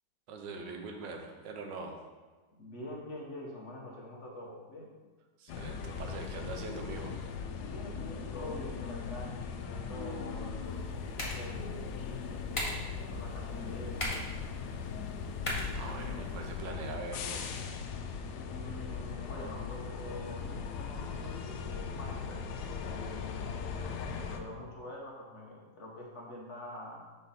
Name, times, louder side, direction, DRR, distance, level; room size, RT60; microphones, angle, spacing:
voice 1, 0.3-2.0 5.4-7.2 15.4-17.5, right 3 dB, 80° right, 3 dB, 1.5 m, -42 dB
voice 2, 2.6-4.9 7.5-14.2 18.2-22.4 22.7-27.0, left 1 dB, 45° left, -2 dB, 1.2 m, -46 dB
sound 1, 5.5-24.4, left 5 dB, 70° left, 1.1 m, -39 dB
sound 2, 10.6-16.6, left 1 dB, 25° left, 0.9 m, -41 dB
5.5 x 4.5 x 5.6 m, 1.3 s
omnidirectional pair, 1.9 m